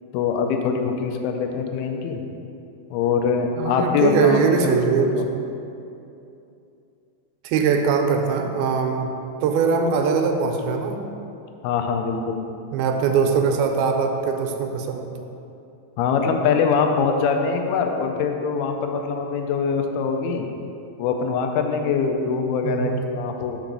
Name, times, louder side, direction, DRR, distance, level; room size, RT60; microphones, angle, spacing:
voice 1, 0.1-2.2 2.9-4.8 5.2-5.3 11.6-12.5 16.0-20.5 21.0-23.6, left 5 dB, 85° left, 4 dB, 2.5 m, -23 dB
voice 2, 3.6-5.2 7.4-9.1 9.4-11.1 12.7-15.1 22.6-23.0, right 5 dB, 85° right, 4 dB, 2.5 m, -21 dB
5.2 x 4.9 x 6.0 m, 2.7 s
omnidirectional pair, 4.4 m